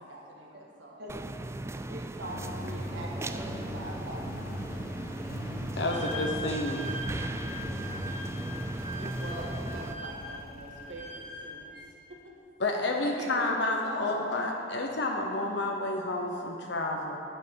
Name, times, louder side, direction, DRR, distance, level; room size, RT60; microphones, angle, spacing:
voice 1, 0.0-1.0 1.7-4.5 9.0-11.8 12.1-12.3 13.0-14.5, right 1 dB, 85° right, 1.7 m, -43 dB
voice 2, 0.6-2.2, equal, 60° right, 1.9 m, -51 dB
sound 1, 1.1-9.9, right 1 dB, 15° right, 0.4 m, -37 dB
Engine, 2.2-11.7, left 1 dB, 50° left, 1.4 m, -42 dB
voice 3, 5.8-6.8 12.6-17.2, left 2 dB, 70° left, 0.9 m, -30 dB
Wind instrument woodwind instrument, 5.9-11.9, equal, 30° left, 1.2 m, -41 dB
10.0 x 8.8 x 6.9 m
head